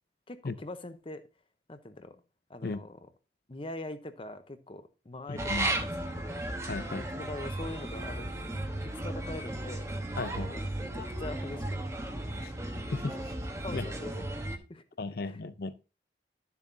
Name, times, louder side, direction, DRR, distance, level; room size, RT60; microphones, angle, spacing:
voice 1, 0.3-1.2 1.7-2.2 2.5-3.0 3.5-6.4 6.9-9.9 10.5-11.8 12.3-12.5 13.6-14.4 14.7-14.8 15.3-15.4, left 2 dB, 30° left, 0.8 m, -43 dB
voice 2, 5.3-5.7 6.7-7.1 10.2-10.5 12.4-12.5 12.9-13.3 13.7-13.9 15.0-15.7, left 3 dB, 60° left, 0.6 m, -35 dB
sound 1, 5.4-14.6, right 1 dB, 15° right, 1.1 m, -35 dB
12.0 x 6.9 x 2.7 m
head